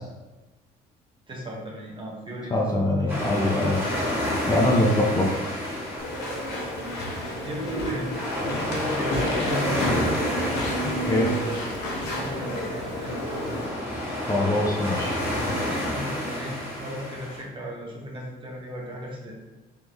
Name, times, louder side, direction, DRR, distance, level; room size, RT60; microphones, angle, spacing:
voice 1, 1.3-3.0 7.4-8.2 8.7-10.1 10.9-11.7 12.1-13.6 15.6-19.4, right 1 dB, 30° right, -2 dB, 1.0 m, -36 dB
voice 2, 2.5-3.8 4.5-5.3 11.0-11.3 14.3-15.2, left 1 dB, 20° left, -2 dB, 0.6 m, -23 dB
sound 1, 3.1-17.4, left 1 dB, 15° right, 1.5 m, -30 dB
Walk footsteps / Chatter / Squeak, 6.0-13.7, equal, 80° left, 0.9 m, -30 dB
3.5 x 3.5 x 3.0 m, 1.2 s
cardioid pair, 110°, 17 cm